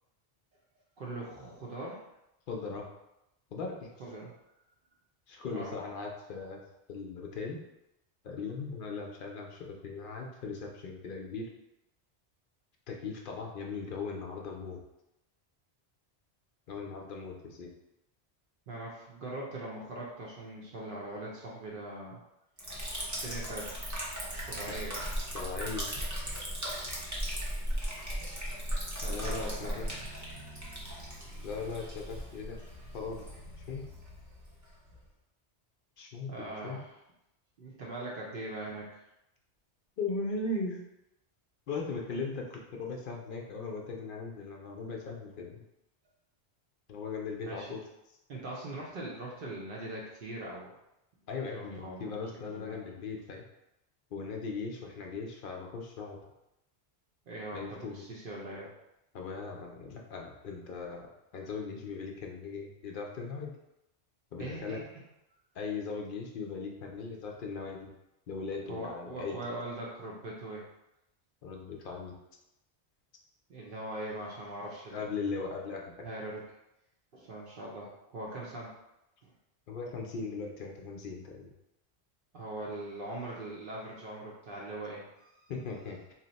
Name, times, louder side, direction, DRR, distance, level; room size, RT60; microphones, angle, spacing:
voice 1, 1.0-2.0 4.0-4.3 5.5-5.7 18.7-22.2 23.1-23.7 24.3-25.2 28.9-30.1 36.3-36.9 37.6-39.0 47.5-47.8 48.3-50.7 51.5-52.2 52.5-52.8 57.3-58.7 64.4-64.8 68.7-70.6 73.5-75.2 76.0-76.4 77.1-78.7 79.2-79.3 82.3-85.5, right 1 dB, 60° right, -4 dB, 0.7 m, -41 dB
voice 2, 2.5-2.9 3.5-3.9 5.3-6.6 6.9-7.6 8.2-11.5 12.9-14.8 16.7-17.7 25.3-25.9 29.1-29.9 31.4-32.6 32.9-33.3 33.7-33.9 36.0-36.8 40.0-40.8 41.7-45.6 46.9-47.8 51.3-53.4 54.1-56.2 57.5-58.0 59.1-61.1 61.3-63.5 64.3-64.8 65.5-67.9 68.3-69.4 71.4-72.1 74.9-76.0 79.7-81.5 85.5-86.1, left 4 dB, 60° left, 0 dB, 0.6 m, -38 dB
Liquid, 22.6-35.0, equal, 20° right, 0.6 m, -37 dB
2.8 x 2.0 x 3.9 m, 0.88 s
omnidirectional pair, 1.1 m